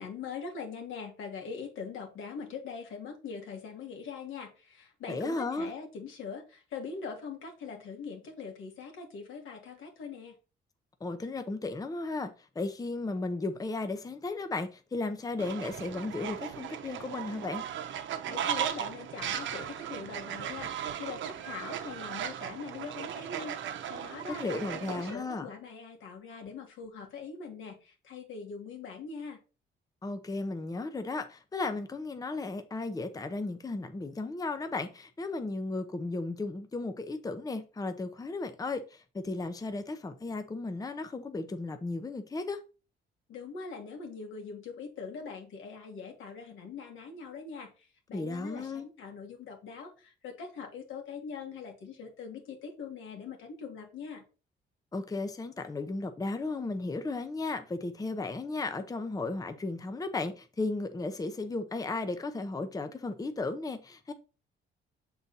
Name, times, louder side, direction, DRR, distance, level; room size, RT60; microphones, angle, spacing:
voice 1, 0.0-10.4 18.3-23.6 23.8-29.4 43.3-54.2, left 5 dB, 80° left, 2.0 m, -42 dB
voice 2, 5.1-5.7 11.0-17.6 24.4-25.5 30.0-42.6 48.1-48.9 54.9-64.1, left 3 dB, 20° left, 0.7 m, -35 dB
Fowl, 15.4-25.2, right 10 dB, 70° right, 0.8 m, -37 dB
6.9 x 4.0 x 4.1 m
cardioid pair, 90°, 20 cm